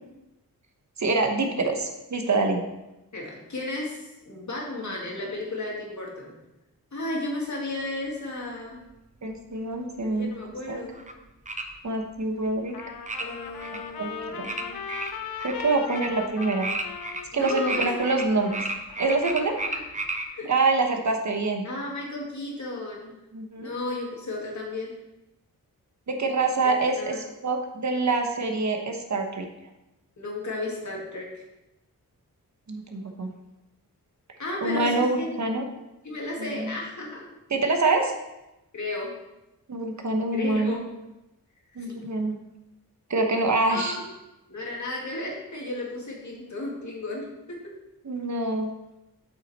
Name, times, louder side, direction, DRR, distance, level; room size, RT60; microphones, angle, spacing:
voice 1, 1.0-2.6 9.2-10.3 10.7-10.8 11.8-12.8 14.0-14.5 15.4-16.7 17.3-18.6 19.0-19.6 20.5-21.6 23.3-23.7 26.1-27.2 27.4-29.5 32.7-33.3 34.6-35.7 36.4-36.8 37.5-38.1 39.7-40.8 41.8-42.4 43.1-44.0 48.0-48.7, right 3 dB, 50° right, 4 dB, 1.0 m, -25 dB
voice 2, 3.1-4.0 4.2-6.3 6.9-8.8 10.1-11.0 13.2-14.8 17.3-18.2 19.7-19.8 20.3-20.5 21.6-23.1 23.6-24.9 26.6-27.2 30.2-31.4 34.4-35.4 36.0-37.3 38.7-39.1 40.3-40.9 41.8-42.0 43.7-43.9 44.5-47.6, left 2 dB, 55° left, -2 dB, 2.2 m, -34 dB
sound 1, 10.9-11.1 11.5-11.6 13.1-13.2 13.6-13.8 14.4-14.6 14.9-15.5 15.9-16.1 16.4-18.2 18.5-20.3, right 2 dB, 20° right, 0.7 m, -32 dB
Trumpet, 12.7-19.7, left 7 dB, 85° left, 0.7 m, -39 dB
7.7 x 5.8 x 4.2 m, 0.95 s
wide cardioid pair, 105°, 35 cm